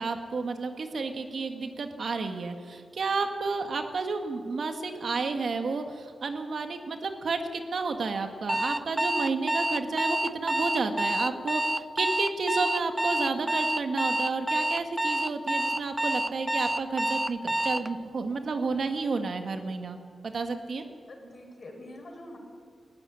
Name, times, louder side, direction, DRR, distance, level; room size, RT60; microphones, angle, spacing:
voice 1, 0.0-20.0 20.2-20.8, right 4 dB, 65° right, 6 dB, 1.8 m, -31 dB
Alarm, 8.5-17.9, right 1 dB, 10° right, 0.5 m, -28 dB
voice 2, 21.1-22.4, left 1 dB, 50° left, 3 dB, 4.9 m, -45 dB
18.5 x 15.0 x 9.9 m, 2.1 s
wide cardioid pair, 90°, 0 cm